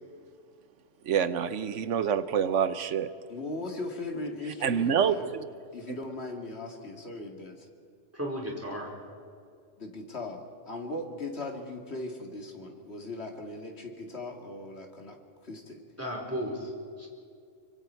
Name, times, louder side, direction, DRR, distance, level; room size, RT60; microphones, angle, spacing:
voice 1, 1.0-3.1 4.6-5.4, right 8 dB, 75° right, 12 dB, 1.2 m, -27 dB
voice 2, 3.3-5.3 5.7-7.7 9.8-15.2 15.4-15.8, left 2 dB, 55° left, 2 dB, 2.6 m, -38 dB
voice 3, 8.1-8.9 16.0-16.7 17.0-17.1, equal, 10° right, -2 dB, 4.2 m, -34 dB
25.0 x 24.5 x 4.6 m, 2.3 s
omnidirectional pair, 1.3 m